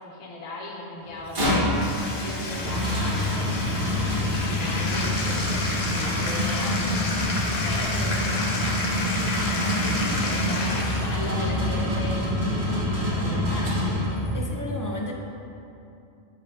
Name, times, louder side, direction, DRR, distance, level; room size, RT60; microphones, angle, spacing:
voice 1, 0.0-1.9 2.2-3.6 4.0-6.8 7.5-9.0 9.3-13.7, left 2 dB, 40° left, -3 dB, 0.8 m, -37 dB
sound 1, 1.0-14.5, left 1 dB, 45° right, 1.6 m, -26 dB
Bathtub (filling or washing), 1.3-11.3, left 2 dB, 65° left, 1.0 m, -31 dB
voice 2, 9.6-10.4 14.3-15.1, left 2 dB, 25° left, -1 dB, 0.4 m, -35 dB
8.0 x 5.3 x 2.7 m, 2.7 s
omnidirectional pair, 1.1 m